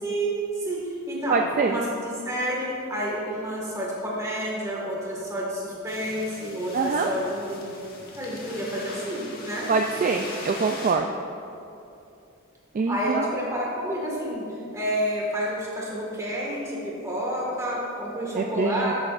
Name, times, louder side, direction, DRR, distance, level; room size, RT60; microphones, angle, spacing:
voice 1, 0.0-7.7 8.2-9.7 10.1-10.3 12.9-14.5 14.7-18.9, equal, 15° right, -4 dB, 1.7 m, -29 dB
voice 2, 1.3-1.8 6.7-7.1 9.7-11.1 12.7-13.3 18.4-18.9, right 4 dB, 40° right, 3 dB, 0.3 m, -24 dB
sound 1, 5.9-10.9, left 2 dB, 45° left, 1.3 m, -41 dB
11.5 x 8.8 x 2.5 m, 2.7 s
head